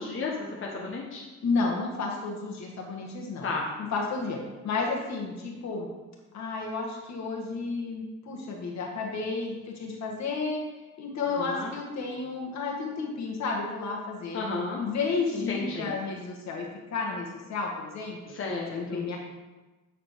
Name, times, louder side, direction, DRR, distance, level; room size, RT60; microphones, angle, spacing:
voice 1, 0.0-1.2 3.4-3.7 11.3-11.7 14.3-14.8 15.3-15.9 18.3-19.0, left 3 dB, 45° left, -2 dB, 1.2 m, -33 dB
voice 2, 1.4-3.5 3.8-4.4 4.6-5.9 6.3-10.6 11.0-14.4 14.8-18.3 18.7-19.2, left 4 dB, 65° left, 0 dB, 1.7 m, -32 dB
9.6 x 4.3 x 4.6 m, 1.2 s
cardioid pair, 90°, 30 cm